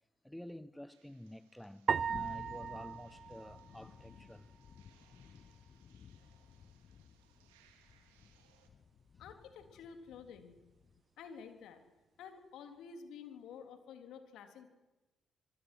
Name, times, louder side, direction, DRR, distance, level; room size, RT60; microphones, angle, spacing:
voice 1, 0.2-4.5, left 1 dB, 5° left, 1.1 m, -50 dB
sound 1, 0.9-8.7, right 9 dB, 85° right, 2.6 m, -71 dB
sound 2, 1.9-4.3, right 6 dB, 50° right, 0.7 m, -38 dB
sound 3, 2.1-11.0, left 7 dB, 55° left, 1.0 m, -57 dB
voice 2, 9.2-10.5 11.2-11.8 12.2-14.7, left 6 dB, 70° left, 3.4 m, -51 dB
25.0 x 25.0 x 6.2 m
hypercardioid pair, 45°, 0 cm